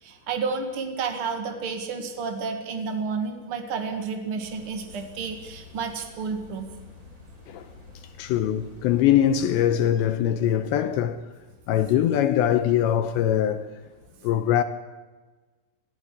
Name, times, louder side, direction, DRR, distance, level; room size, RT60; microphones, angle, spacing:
voice 1, 0.0-6.7, right 5 dB, 85° right, 1.2 m, -31 dB
sound 1, 4.4-9.5, left 3 dB, 25° right, 4.5 m, -48 dB
voice 2, 8.2-11.2 11.7-13.7 14.2-14.6, left 10 dB, 80° left, 2.7 m, -22 dB
22.0 x 15.0 x 9.7 m
omnidirectional pair, 5.8 m